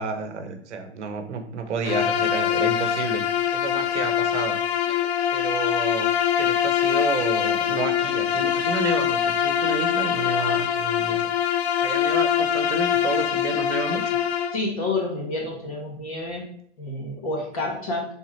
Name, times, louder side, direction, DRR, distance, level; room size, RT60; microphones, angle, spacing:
voice 1, 0.0-3.2 3.5-4.9 5.3-6.1 6.4-11.3 11.8-14.1, right 5 dB, 75° right, 7 dB, 0.9 m, -31 dB
Bowed string instrument, 1.8-14.6, left 9 dB, 65° left, 0.4 m, -23 dB
voice 2, 14.5-16.4 16.8-18.1, left 2 dB, 30° left, -1 dB, 0.7 m, -29 dB
4.1 x 3.6 x 3.1 m, 0.66 s
hypercardioid pair, 175°, 35 cm